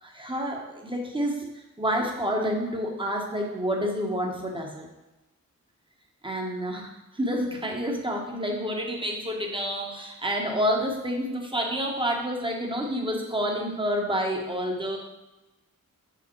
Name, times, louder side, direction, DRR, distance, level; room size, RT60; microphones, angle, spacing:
voice 1, 0.0-4.9 6.2-15.0, equal, 15° right, 0 dB, 1.3 m, -29 dB
6.7 x 5.1 x 4.6 m, 1.0 s
wide cardioid pair, 115°, 33 cm